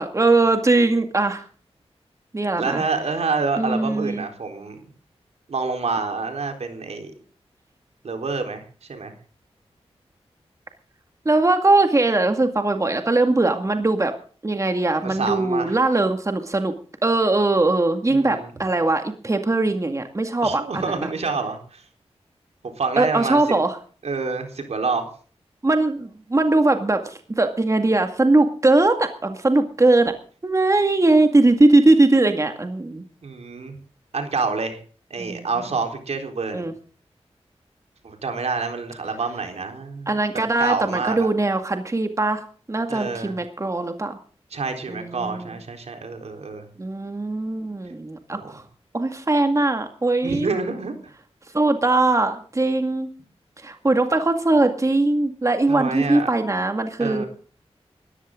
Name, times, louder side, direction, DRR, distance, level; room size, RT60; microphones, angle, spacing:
voice 1, 0.0-1.4 2.3-2.8 3.6-4.2 11.3-14.1 14.4-16.7 17.0-21.1 23.0-23.8 25.6-30.1 30.4-33.0 35.2-35.5 36.5-36.7 40.1-42.4 42.7-44.2 44.9-45.6 46.8-48.6 48.9-50.5 51.5-53.1 53.6-57.2, right 2 dB, 30° right, 6 dB, 2.1 m, -20 dB
voice 2, 2.6-4.8 5.5-7.1 8.0-8.6 8.9-9.1 15.0-15.8 18.1-18.5 20.4-21.8 22.6-23.4 24.0-25.1 33.2-33.8 34.1-34.8 35.1-36.7 38.0-40.1 40.6-41.3 42.9-43.4 44.5-46.7 48.3-48.5 50.2-51.0 55.7-56.3 57.0-57.3, right 4 dB, 75° right, 5 dB, 4.1 m, -27 dB
19.5 x 14.5 x 3.8 m, 0.41 s
wide cardioid pair, 80°, 11 cm